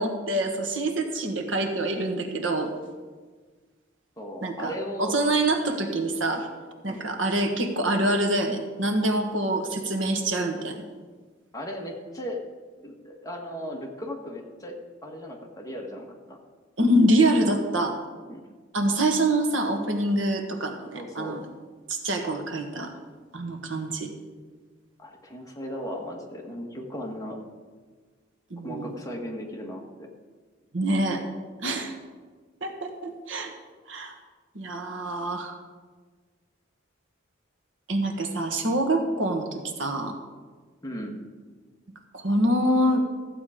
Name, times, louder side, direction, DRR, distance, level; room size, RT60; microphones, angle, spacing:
voice 1, 0.0-2.7 4.4-4.7 5.0-6.5 6.8-10.8 16.8-17.9 18.7-21.4 21.9-22.9 23.3-24.1 28.5-28.9 30.7-31.2 31.6-31.9 32.6-33.5 33.9-34.1 34.5-35.6 37.9-40.1 42.1-43.0, right 1 dB, 70° right, 4 dB, 1.5 m, -25 dB
voice 2, 4.2-5.2 6.9-7.2 11.5-12.4 12.8-14.8 15.0-16.4 18.2-18.4 20.9-21.4 25.0-27.4 28.6-30.1 31.7-31.8 40.8-41.2, equal, 20° left, 0 dB, 1.5 m, -36 dB
14.0 x 8.5 x 5.0 m, 1.4 s
head